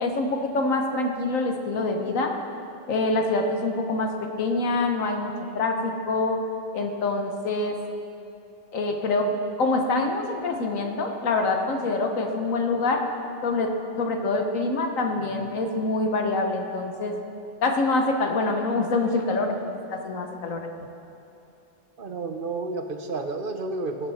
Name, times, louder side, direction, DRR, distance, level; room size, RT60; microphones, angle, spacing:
voice 1, 0.0-2.3 2.9-4.1 4.4-6.4 6.7-7.8 8.7-9.3 9.6-13.0 13.4-17.1 17.6-20.7, left 3 dB, 85° left, 4 dB, 1.5 m, -25 dB
voice 2, 22.0-24.1, right 3 dB, 50° right, 6 dB, 0.8 m, -31 dB
18.5 x 8.0 x 4.3 m, 2.9 s
omnidirectional pair, 1.4 m